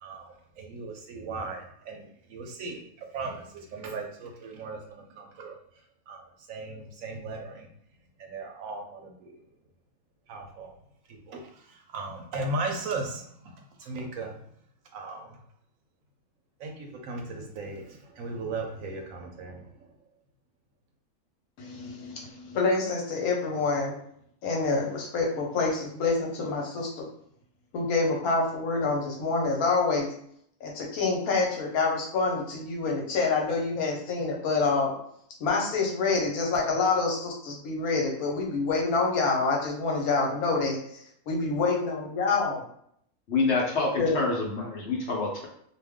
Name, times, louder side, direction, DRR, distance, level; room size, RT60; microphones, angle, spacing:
voice 1, 0.0-5.6 6.1-7.7 8.2-9.3 10.3-10.7 11.1-11.4 11.9-13.5 13.8-14.3 14.9-15.4 16.6-19.7, right 3 dB, 70° right, 3 dB, 1.0 m, -37 dB
voice 2, 21.6-23.9 24.4-27.0 27.7-30.1 30.6-34.9 35.4-40.8 41.3-42.6 44.0-44.2, left 4 dB, 85° left, -1 dB, 1.3 m, -27 dB
voice 3, 43.3-45.5, left 3 dB, 55° left, -2 dB, 0.9 m, -27 dB
2.6 x 2.4 x 3.4 m, 0.68 s
omnidirectional pair, 1.5 m